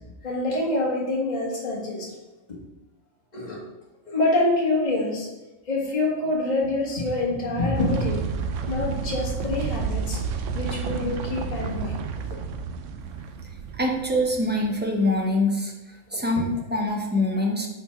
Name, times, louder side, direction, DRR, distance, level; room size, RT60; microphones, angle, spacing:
voice 1, 0.2-2.1 2.5-2.6 3.3-3.6 4.1-5.3 5.7-8.3 8.7-10.2 10.5-12.4 16.1-16.4, left 2 dB, 30° left, -5 dB, 1.7 m, -26 dB
sound 1, 7.7-15.1, right 6 dB, 70° right, 0.9 m, -31 dB
voice 2, 13.7-17.7, left 1 dB, 10° right, 0 dB, 0.8 m, -24 dB
5.7 x 4.3 x 5.7 m, 1.0 s
omnidirectional pair, 1.4 m